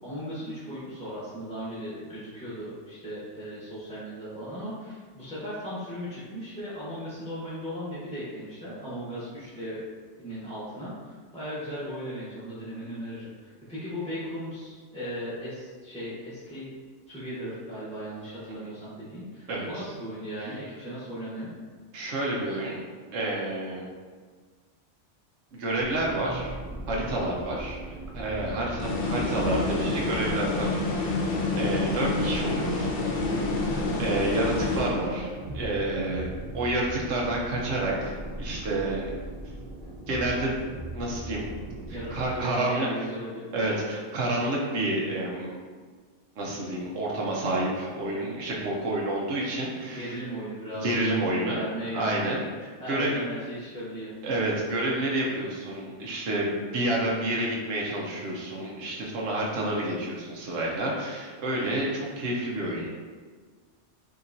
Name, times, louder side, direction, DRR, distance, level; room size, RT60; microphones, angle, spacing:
voice 1, 0.0-9.8 10.2-16.7 17.1-21.5 41.9-43.5 49.9-52.3 52.8-54.1, equal, 5° left, -12 dB, 1.0 m, -37 dB
voice 2, 19.5-19.8 21.9-22.9 23.1-23.9 25.5-26.5 26.9-27.8 28.1-33.0 33.2-33.5 33.9-39.1 40.1-40.6 40.9-41.5 41.9-42.9 43.5-45.6 46.4-50.2 50.7-51.6 51.9-53.2 54.2-62.9, right 1 dB, 70° right, -3 dB, 1.0 m, -29 dB
sound 1, 25.8-42.4, right 2 dB, 45° right, 0.4 m, -39 dB
sound 2, 28.8-35.4, left 3 dB, 55° left, 0.8 m, -28 dB
5.5 x 2.9 x 2.7 m, 1.5 s
omnidirectional pair, 1.3 m